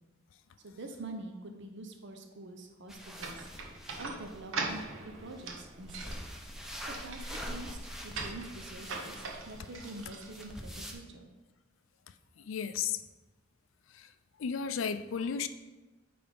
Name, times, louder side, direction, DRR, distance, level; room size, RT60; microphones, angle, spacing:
voice 1, 0.6-3.5 4.0-6.2 6.8-11.3, right 2 dB, 65° right, 4 dB, 0.7 m, -46 dB
sound 1, 2.9-10.9, equal, ahead, 0.7 m, -45 dB
sound 2, 3.2-11.0, right 3 dB, 90° right, 1.0 m, -42 dB
voice 2, 12.4-13.0 13.9-14.1 14.4-15.5, left 7 dB, 75° left, 11 dB, 0.4 m, -34 dB
8.9 x 3.5 x 5.1 m, 1.2 s
head